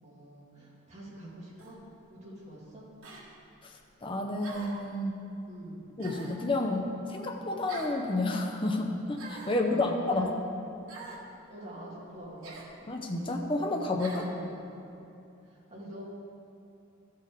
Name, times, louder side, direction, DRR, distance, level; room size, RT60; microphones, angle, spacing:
voice 1, 0.0-1.8 2.1-2.9 5.5-5.8 9.4-10.3 11.5-12.9 14.1-14.6 15.4-16.1, equal, 35° right, -7 dB, 2.2 m, -45 dB
sound 1, 1.6-1.8 3.0-3.3 4.4-4.8 6.0-6.4 7.7-8.0 9.1-9.6 10.9-11.2 12.4-12.7 14.0-14.3, right 3 dB, 90° right, 1.4 m, -44 dB
voice 2, 4.0-5.2 6.0-10.3 12.9-14.2, left 2 dB, 25° left, 2 dB, 0.7 m, -30 dB
13.5 x 6.6 x 3.7 m, 2.7 s
head